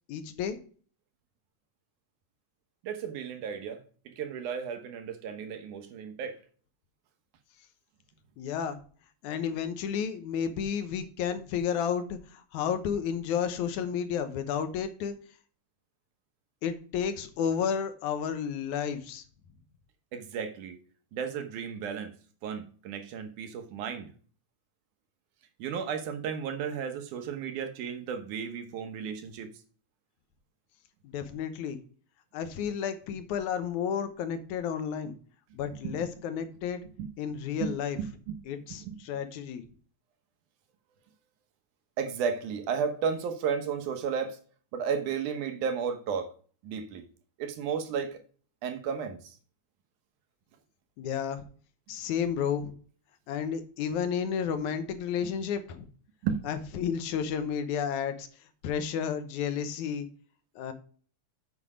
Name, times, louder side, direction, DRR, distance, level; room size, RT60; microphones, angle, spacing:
voice 1, 0.1-0.6 8.4-8.8 9.2-15.1 16.6-19.2 31.0-31.8 32.3-35.2 35.5-36.8 37.2-38.0 38.5-39.6 51.0-51.5 51.9-52.7 53.3-55.9 56.5-58.3 58.6-60.1 60.6-60.7, left 7 dB, 80° left, 2.3 m, -32 dB
voice 2, 2.8-3.8 4.1-6.4 20.1-20.8 21.1-22.1 22.4-24.1 25.6-29.5 35.8-35.9 37.0-37.1 37.6-38.4 38.8-39.0 42.0-44.4 44.7-46.3 46.6-47.0 47.4-48.2 48.6-49.2 56.2-56.4, right 6 dB, 90° right, 2.6 m, -33 dB
8.1 x 5.4 x 4.9 m
omnidirectional pair, 3.4 m